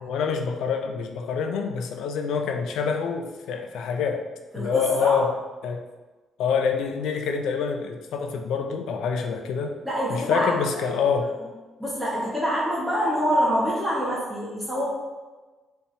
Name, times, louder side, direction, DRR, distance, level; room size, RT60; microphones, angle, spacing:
voice 1, 0.0-4.3 4.5-5.3 5.6-5.8 6.4-9.7 10.1-11.3, left 6 dB, 80° left, 5 dB, 0.4 m, -26 dB
voice 2, 4.5-5.2 9.8-10.9 11.8-14.8, equal, 5° right, -8 dB, 1.2 m, -26 dB
4.4 x 3.4 x 2.7 m, 1.2 s
cardioid pair, 90°, 0 cm